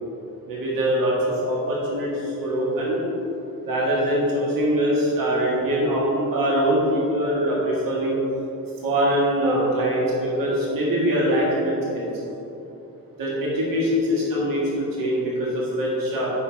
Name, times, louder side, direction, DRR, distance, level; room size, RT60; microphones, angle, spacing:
voice 1, 0.5-1.2 1.4-3.0 3.6-8.2 8.8-12.1 13.2-16.3, equal, 70° right, -5 dB, 1.7 m, -23 dB
6.9 x 5.5 x 4.5 m, 3.0 s
wide cardioid pair, 170°, 35 cm